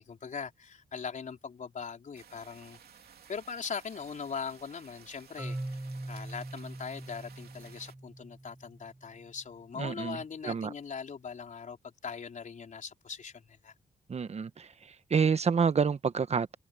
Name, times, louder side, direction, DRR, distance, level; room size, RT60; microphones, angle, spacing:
voice 1, 0.0-2.8 3.3-5.8 6.1-11.8 12.0-13.7, left 6 dB, 50° left, 4.2 m, -40 dB
sound 1, 2.1-8.0, right 8 dB, 70° right, 3.0 m, -56 dB
Marimba xylophone, 5.4-9.3, right 1 dB, 10° right, 7.6 m, -42 dB
voice 2, 9.8-10.2 10.4-10.7 14.1-14.7 15.1-16.6, right 6 dB, 40° right, 1.2 m, -28 dB
cardioid pair, 100°, 17 cm